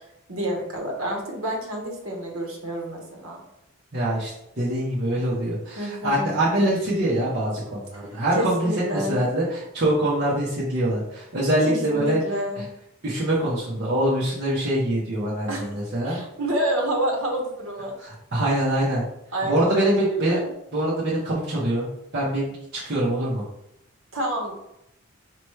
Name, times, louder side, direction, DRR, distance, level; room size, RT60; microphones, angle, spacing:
voice 1, 0.3-3.4 5.8-6.3 7.9-9.2 11.7-12.7 15.5-15.7 16.0-17.9 19.3-20.5 24.1-24.5, right 1 dB, 70° right, 0 dB, 1.1 m, -28 dB
voice 2, 3.9-4.3 4.6-12.2 13.0-16.2 18.0-19.0 19.4-20.4 20.7-21.9 22.1-23.4, right 1 dB, 50° right, -9 dB, 1.0 m, -24 dB
4.5 x 3.0 x 3.1 m, 0.81 s
head